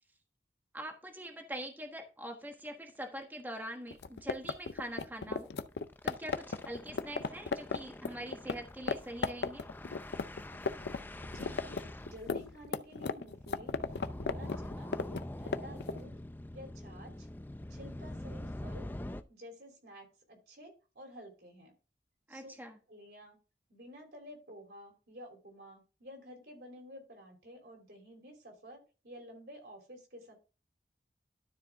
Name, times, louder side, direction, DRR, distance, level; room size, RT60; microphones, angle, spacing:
voice 1, 0.7-5.5 6.0-9.6 22.3-22.8, right 1 dB, 10° right, 3 dB, 1.3 m, -43 dB
sound 1, 2.5-2.7 3.0-3.1 3.4-3.6 3.9-4.0 5.4-19.2, left 1 dB, 10° left, 0.4 m, -45 dB
sound 2, 3.9-8.6 8.9-9.0 9.2-11.0 11.2-16.0, left 4 dB, 70° left, 0.5 m, -35 dB
voice 2, 11.3-11.8 12.0-13.7 14.1-14.9 15.4-16.1 16.5-17.3 17.7-18.9 19.3-21.7 22.3-22.5 22.9-23.4 23.7-30.4, equal, 60° right, 3 dB, 3.1 m, -51 dB
12.5 x 4.8 x 3.5 m, 0.32 s
head